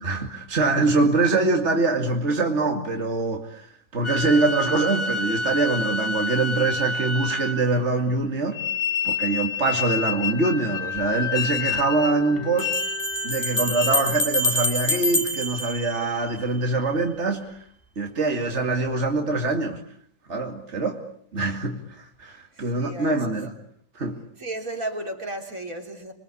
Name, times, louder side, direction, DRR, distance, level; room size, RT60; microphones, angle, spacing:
voice 1, 0.0-8.6 9.0-12.9 13.2-17.5 18.0-19.8 20.3-21.0 21.3-23.5 23.9-24.2, right 3 dB, 55° right, 2.7 m, -24 dB
sound 1, 4.0-7.8 8.5-14.2, left 4 dB, 45° left, 1.6 m, -29 dB
sound 2, 11.0-11.1 12.6-16.6, left 1 dB, 20° left, 3.4 m, -26 dB
voice 2, 22.5-23.2 24.4-26.1, right 1 dB, 80° right, 4.1 m, -33 dB
27.0 x 23.5 x 8.6 m
omnidirectional pair, 1.4 m